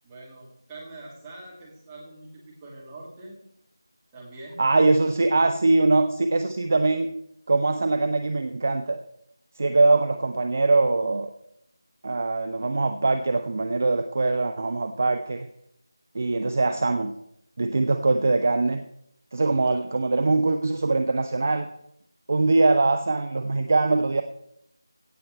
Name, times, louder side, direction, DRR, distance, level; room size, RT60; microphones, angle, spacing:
voice 1, 0.0-3.4 4.1-5.1 19.7-19.8, right 2 dB, 10° right, -5 dB, 2.1 m, -44 dB
voice 2, 4.6-7.1 7.5-9.0 9.6-11.3 12.0-15.5 16.1-17.1 17.6-18.8 19.3-21.7 22.3-24.2, right 3 dB, 35° right, 8 dB, 0.5 m, -22 dB
16.5 x 7.3 x 4.3 m, 0.77 s
figure-of-eight pair, 165°, 2 cm